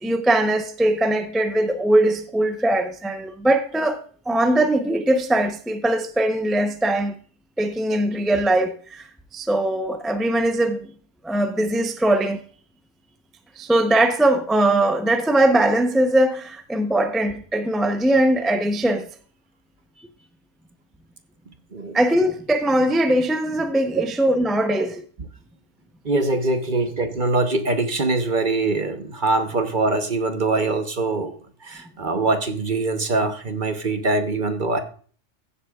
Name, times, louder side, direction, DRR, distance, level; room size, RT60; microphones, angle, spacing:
voice 1, 0.0-7.1 7.6-10.9 11.2-12.4 13.6-19.1 21.9-24.9, right 1 dB, ahead, 0.6 m, -21 dB
voice 2, 26.0-31.3 31.6-34.8, right 3 dB, 40° right, 1.1 m, -23 dB
15.5 x 7.9 x 2.4 m
omnidirectional pair, 1.4 m